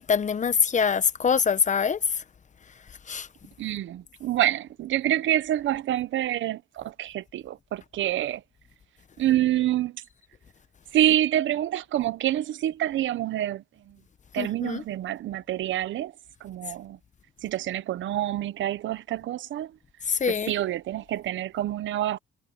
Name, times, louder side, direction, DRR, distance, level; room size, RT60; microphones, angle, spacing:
voice 1, 0.0-2.2 3.1-3.3 14.4-14.8 20.1-20.5, left 6 dB, 40° left, 1.1 m, -24 dB
voice 2, 3.6-8.4 9.2-10.0 10.9-14.0 14.3-16.1 16.4-17.0 17.4-19.7 20.3-22.2, right 13 dB, 75° right, 1.0 m, -27 dB
cardioid pair, 90°, 20 cm